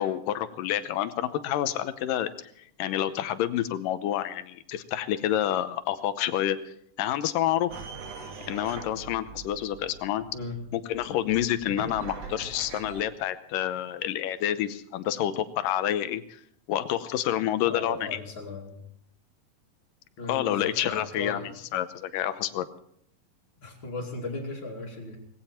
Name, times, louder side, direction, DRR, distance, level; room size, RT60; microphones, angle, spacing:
voice 1, 0.0-2.3 2.8-6.6 7.0-7.7 8.5-10.3 10.7-16.2 16.7-18.2 20.3-22.7, left 12 dB, 80° left, 12 dB, 2.5 m, -28 dB
sound 1, 7.7-13.0, right 5 dB, 55° right, 2.4 m, -42 dB
voice 2, 17.6-18.8 20.2-21.4 23.6-25.2, left 2 dB, 35° left, -6 dB, 3.0 m, -37 dB
19.0 x 16.5 x 4.4 m, 0.67 s
omnidirectional pair, 3.9 m